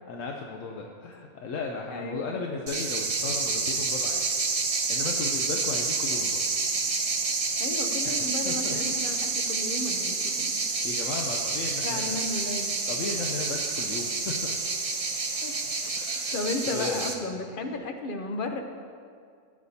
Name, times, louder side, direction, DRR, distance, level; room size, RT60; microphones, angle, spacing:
voice 1, 0.0-4.2 4.9-6.5 8.0-8.1 8.4-8.8 10.8-12.2 12.9-14.3 16.0-16.4 16.7-17.1, left 4 dB, 70° left, 1 dB, 1.0 m, -35 dB
voice 2, 1.9-2.4 7.6-10.6 11.8-12.7 15.4-15.5 15.8-15.9 16.3-18.6, left 2 dB, 50° left, 5 dB, 0.7 m, -34 dB
sound 1, 2.7-17.1, right 4 dB, 40° right, 0.5 m, -29 dB
14.0 x 8.5 x 2.7 m, 2.2 s
omnidirectional pair, 1.5 m